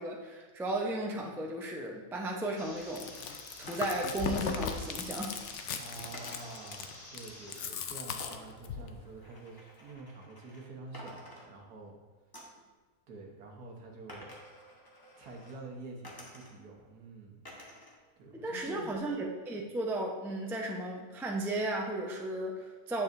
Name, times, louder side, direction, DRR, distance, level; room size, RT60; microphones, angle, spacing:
voice 1, 0.0-3.1 3.6-5.4 18.3-23.0, right 1 dB, 5° right, -1 dB, 0.3 m, -35 dB
sound 1, 2.6-7.6, left 1 dB, 45° left, 2.1 m, -50 dB
Chewing mastication, 2.8-8.9, left 6 dB, 65° left, 0.7 m, -38 dB
sound 2, 3.7-4.1 6.1-6.7 8.2-10.7 10.9-11.9 12.3-12.7 14.1-15.6 16.0-16.8 17.4-18.0 18.3-19.1, left 1 dB, 15° left, 0.9 m, -51 dB
voice 2, 5.8-12.0 13.1-14.3 15.2-17.4 18.2-18.9, right 3 dB, 80° right, 0 dB, 1.6 m, -47 dB
8.7 x 7.1 x 2.6 m, 1.4 s
omnidirectional pair, 1.6 m